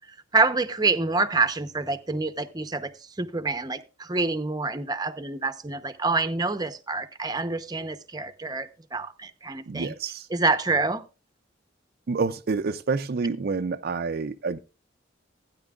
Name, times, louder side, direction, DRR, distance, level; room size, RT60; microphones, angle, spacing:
voice 1, 0.3-2.9 3.2-9.9 10.3-11.0, right 3 dB, 20° right, 0.8 m, -27 dB
voice 2, 9.7-10.3 12.1-14.6, right 4 dB, 55° right, 0.5 m, -28 dB
16.0 x 9.9 x 2.4 m
head